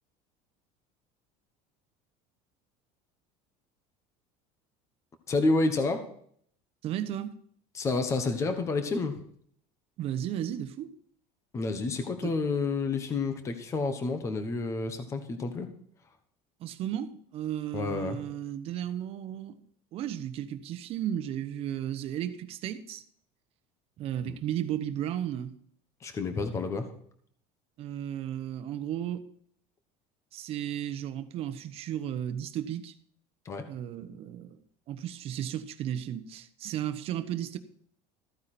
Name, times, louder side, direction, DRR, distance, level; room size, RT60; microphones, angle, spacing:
voice 1, 5.3-6.0 7.7-9.2 11.5-15.7 17.7-18.2 24.2-24.4 26.0-26.9 33.4-33.7, left 3 dB, 20° left, 1.2 m, -29 dB
voice 2, 6.8-7.3 10.0-10.9 12.2-12.3 16.6-19.6 19.9-23.0 24.0-25.5 27.8-29.3 30.3-32.9 33.7-37.6, right 10 dB, 40° right, 1.1 m, -34 dB
14.5 x 9.6 x 4.3 m
cardioid pair, 175°, 16 cm